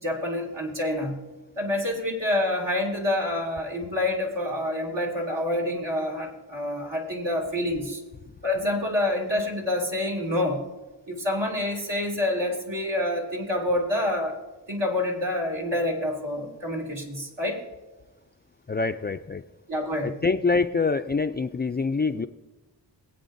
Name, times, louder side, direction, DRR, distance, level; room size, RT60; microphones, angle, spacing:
voice 1, 0.0-1.2 1.6-8.0 8.4-10.6 11.1-14.4 14.7-17.6 19.7-20.1, left 1 dB, 75° right, -1 dB, 2.7 m, -27 dB
voice 2, 18.7-19.4 20.0-22.3, left 4 dB, 25° left, 8 dB, 0.3 m, -25 dB
21.5 x 8.5 x 2.6 m, 1.1 s
cardioid pair, 65°, 44 cm